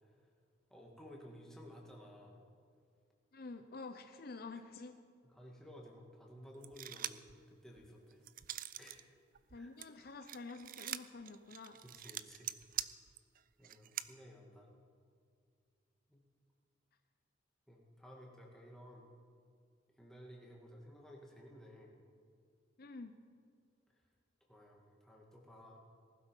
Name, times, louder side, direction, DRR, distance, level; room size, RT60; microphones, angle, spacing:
voice 1, 0.7-2.4 5.3-8.2 8.8-9.0 9.5-9.7 11.8-12.5 13.6-14.7 16.1-16.2 17.7-19.1 20.0-21.9 24.5-25.8, equal, 5° left, -2 dB, 2.2 m, -55 dB
voice 2, 3.3-5.0 9.5-11.8 22.8-23.1, left 3 dB, 50° left, 7 dB, 0.7 m, -48 dB
sound 1, 6.6-7.3 7.8-9.0 9.3-14.1, right 12 dB, 45° right, 0.4 m, -44 dB
19.0 x 12.0 x 5.5 m, 2.2 s
head